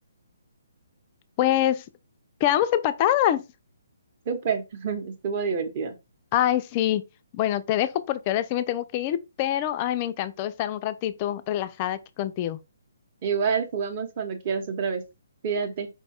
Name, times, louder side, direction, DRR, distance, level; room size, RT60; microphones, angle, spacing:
voice 1, 1.4-1.8 2.4-3.4 6.3-7.0 7.3-12.6, left 12 dB, 25° left, 0.3 m, -25 dB
voice 2, 4.3-6.0 13.2-15.0 15.4-15.9, right 6 dB, 30° right, 0.8 m, -28 dB
4.6 x 2.3 x 4.2 m
hypercardioid pair, 165°, 0 cm